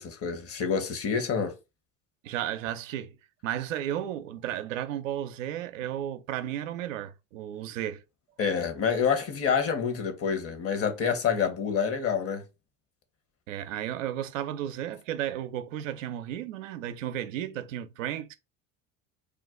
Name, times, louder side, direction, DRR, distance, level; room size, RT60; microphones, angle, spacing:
voice 1, 0.0-1.5 8.4-12.4, left 6 dB, 40° left, 0.9 m, -27 dB
voice 2, 2.2-3.2 3.4-8.0 13.5-18.3, right 11 dB, 85° right, 0.5 m, -33 dB
2.4 x 2.2 x 3.6 m
hypercardioid pair, 80°, 38 cm